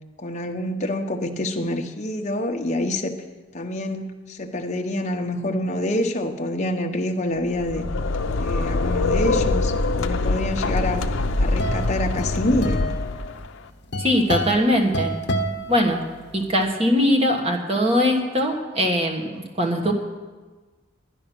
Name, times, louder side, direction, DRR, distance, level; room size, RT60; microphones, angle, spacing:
voice 1, 0.2-3.2 3.5-7.8 8.4-11.1 11.4-12.9, left 1 dB, 35° left, 3 dB, 0.9 m, -26 dB
sound 1, 7.4-13.5, left 3 dB, 70° left, 0.6 m, -24 dB
sound 2, 11.0-16.4, equal, 55° left, 1.2 m, -29 dB
voice 2, 14.0-15.1 15.7-16.0 16.3-19.9, equal, 30° right, 2 dB, 1.4 m, -21 dB
12.0 x 9.9 x 6.0 m, 1.3 s
head